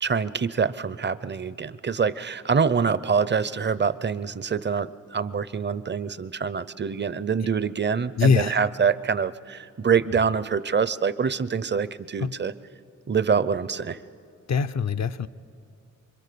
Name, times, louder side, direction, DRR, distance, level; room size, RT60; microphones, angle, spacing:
voice 1, 0.0-12.5 13.1-14.0, right 6 dB, 35° right, 16 dB, 0.7 m, -25 dB
voice 2, 8.2-8.6 12.2-12.4 14.5-15.3, left 6 dB, 60° left, 10 dB, 0.7 m, -22 dB
26.0 x 24.0 x 6.9 m, 2.6 s
cardioid pair, 80°, 32 cm